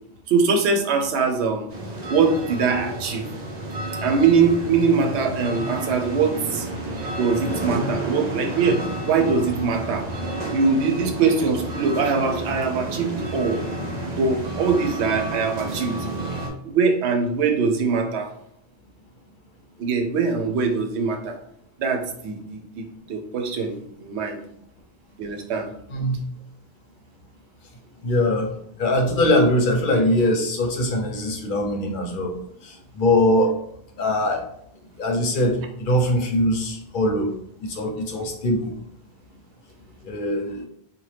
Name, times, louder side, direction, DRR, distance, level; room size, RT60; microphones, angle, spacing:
voice 1, 0.3-1.7 2.1-3.3 4.0-6.7 7.2-10.1 10.5-13.6 14.2-16.0 16.6-18.3 19.8-21.4 21.8-24.4 25.2-25.7, right 5 dB, 90° right, 5 dB, 0.9 m, -22 dB
sound 1, 1.7-16.5, right 2 dB, 45° right, 0.7 m, -30 dB
voice 2, 25.9-26.2 28.0-28.5 28.8-32.3 32.6-33.5 34.0-34.4 35.0-37.3 37.6-38.7 40.0-40.6, left 1 dB, 55° left, 2 dB, 0.7 m, -22 dB
2.8 x 2.2 x 3.2 m, 0.70 s
omnidirectional pair, 1.1 m